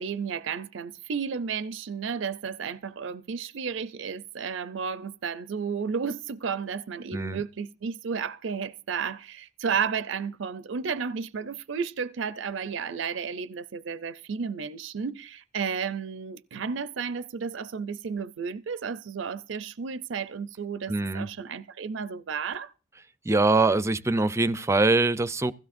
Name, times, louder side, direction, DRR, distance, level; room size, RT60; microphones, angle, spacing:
voice 1, 0.0-22.7, right 6 dB, 70° right, 0.5 m, -32 dB
voice 2, 20.9-21.3 23.2-25.5, right 2 dB, 15° right, 0.5 m, -23 dB
16.5 x 15.5 x 2.6 m
head